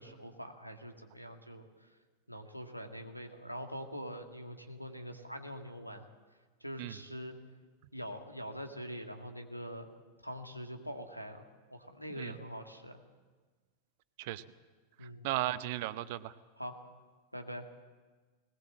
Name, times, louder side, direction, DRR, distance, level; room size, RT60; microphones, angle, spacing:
voice 1, 0.0-1.9 2.3-6.1 6.6-7.4 7.9-9.9 10.2-13.0 15.0-15.3 16.6-16.8 17.3-17.7, equal, 90° left, 5 dB, 2.0 m, -44 dB
voice 2, 15.0-16.3, right 15 dB, 50° right, 14 dB, 0.9 m, -36 dB
19.5 x 19.5 x 7.6 m, 1.4 s
figure-of-eight pair, 90°, 0 cm